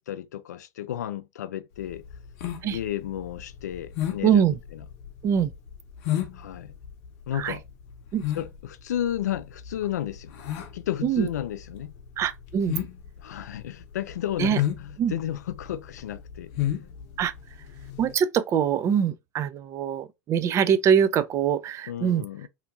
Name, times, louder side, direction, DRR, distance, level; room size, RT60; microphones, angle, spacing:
voice 1, 0.0-2.0 2.6-4.5 6.3-6.7 7.3-7.6 8.4-10.3 10.7-11.9 13.2-16.5 21.9-22.5, left 11 dB, 75° left, 0.4 m, -32 dB
sound 1, 1.8-18.1, left 12 dB, 55° left, 0.7 m, -33 dB
voice 2, 4.2-4.6 5.2-5.5 7.3-7.6 8.1-8.2 11.0-11.3 12.2-12.8 14.4-14.6 15.0-15.1 17.2-17.3 18.0-22.2, right 8 dB, 35° right, 0.4 m, -23 dB
2.8 x 2.5 x 2.5 m
hypercardioid pair, 90°, 9 cm